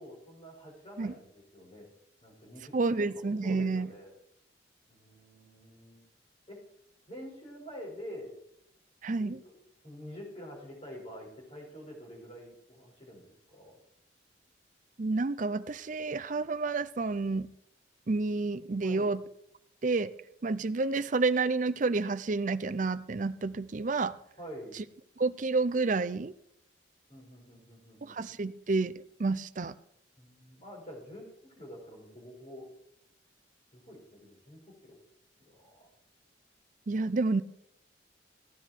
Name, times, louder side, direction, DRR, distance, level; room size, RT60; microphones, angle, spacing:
voice 1, 0.0-1.9 2.2-3.0 3.4-4.1 4.9-6.1 6.5-6.6 7.1-8.4 9.2-9.6 9.8-13.8 18.8-19.2 24.4-24.8 27.1-28.2 30.2-32.7 33.7-35.0 35.4-35.9, equal, 30° left, -2 dB, 5.3 m, -47 dB
voice 2, 2.7-3.9 9.0-9.4 15.0-17.5 18.1-19.2 19.8-20.1 20.4-24.1 25.2-26.3 28.0-28.9 29.2-29.8 36.9-37.4, right 3 dB, 45° right, 15 dB, 0.5 m, -29 dB
15.0 x 10.0 x 4.5 m, 0.76 s
head